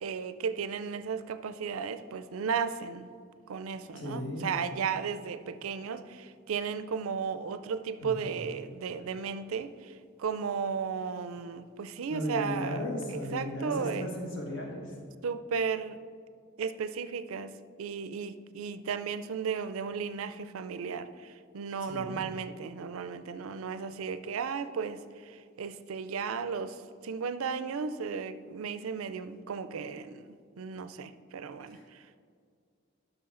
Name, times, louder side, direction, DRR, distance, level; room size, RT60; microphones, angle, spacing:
voice 1, 0.0-3.1 3.5-14.1 15.2-16.0 16.6-32.2, right 6 dB, 85° right, 0.4 m, -35 dB
voice 2, 3.9-4.5 8.0-8.2 12.1-14.9 21.9-22.2 31.7-31.8, equal, 60° left, 1.7 m, -36 dB
11.0 x 6.1 x 3.8 m
head